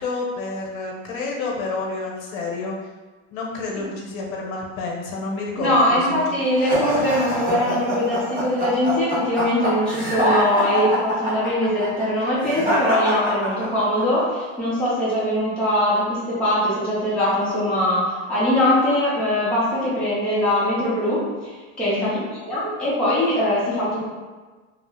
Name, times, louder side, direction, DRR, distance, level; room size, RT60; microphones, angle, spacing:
voice 1, 0.0-2.7 3.3-6.2 21.8-22.3, left 3 dB, 75° left, -1 dB, 0.8 m, -29 dB
voice 2, 5.6-21.2 21.8-22.1 22.4-24.0, left 1 dB, 5° left, -11 dB, 0.5 m, -22 dB
sound 1, 6.6-14.0, equal, 20° right, 0.8 m, -24 dB
2.4 x 2.0 x 3.5 m, 1.3 s
supercardioid pair, 160°, 41 cm